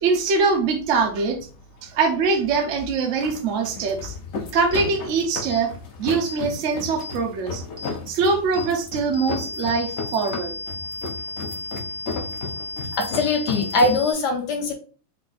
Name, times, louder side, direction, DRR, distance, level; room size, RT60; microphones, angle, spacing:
voice 1, 0.0-1.4 1.8-4.1 4.5-5.7 6.0-7.6 8.1-10.5, right 4 dB, 75° right, 4 dB, 0.6 m, -23 dB
sound 1, 0.6-14.0, left 4 dB, 90° left, 0.6 m, -35 dB
sound 2, 4.7-4.9 5.5-5.6 6.2-6.4 7.0-7.2 7.8-7.9 8.5-8.7 9.1-14.1, left 2 dB, 40° right, 0.9 m, -34 dB
voice 2, 13.0-14.7, left 2 dB, 70° left, 5 dB, 1.1 m, -22 dB
3.5 x 2.5 x 3.8 m, 0.38 s
omnidirectional pair, 2.2 m